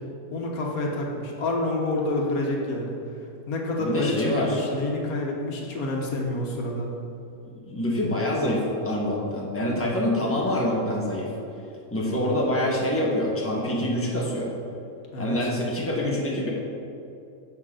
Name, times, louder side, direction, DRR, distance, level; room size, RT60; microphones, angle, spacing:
voice 1, 0.3-3.0 3.5-6.9 15.1-15.4, left 2 dB, 80° left, -1 dB, 1.7 m, -28 dB
voice 2, 3.8-4.6 7.4-11.3 11.9-14.5 15.2-16.5, left 1 dB, 10° left, -4 dB, 1.4 m, -26 dB
10.5 x 7.2 x 3.9 m, 2.6 s
omnidirectional pair, 1.5 m